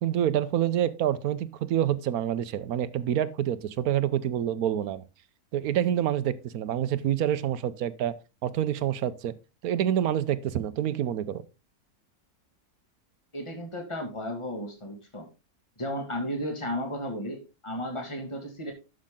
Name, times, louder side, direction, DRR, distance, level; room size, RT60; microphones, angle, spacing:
voice 1, 0.0-5.0 5.5-8.2 8.4-9.3 9.6-11.4, right 10 dB, 75° right, 1.1 m, -27 dB
voice 2, 13.3-15.3 15.8-18.7, equal, 20° left, 2.3 m, -34 dB
11.5 x 6.4 x 3.7 m
omnidirectional pair, 1.6 m